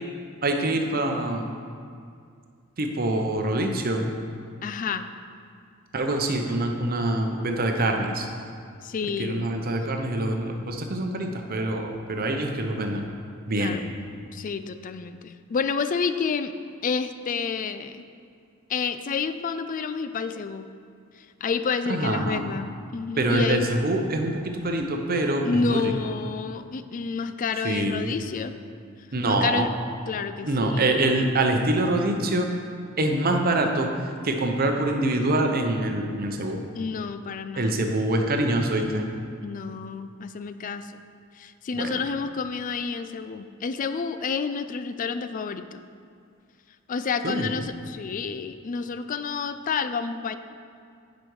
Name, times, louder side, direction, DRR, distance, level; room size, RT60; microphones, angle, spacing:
voice 1, 0.4-1.5 2.8-4.1 5.9-8.3 9.2-13.1 13.5-13.8 21.9-22.4 23.2-25.8 27.6-28.1 29.1-29.7 30.5-32.5 33.0-33.9 34.2-36.6 37.6-39.0 41.7-42.0 47.2-47.5, right 1 dB, 45° right, 4 dB, 0.8 m, -25 dB
voice 2, 4.6-5.1 8.8-9.5 13.5-13.8 14.3-16.5 16.8-18.0 18.7-20.7 21.4-23.7 25.4-28.5 29.2-29.7 30.1-30.9 36.8-37.8 38.5-39.1 39.4-40.9 41.4-45.8 46.9-50.4, left 5 dB, 40° left, 11 dB, 0.4 m, -29 dB
9.9 x 5.2 x 4.7 m, 2.3 s
head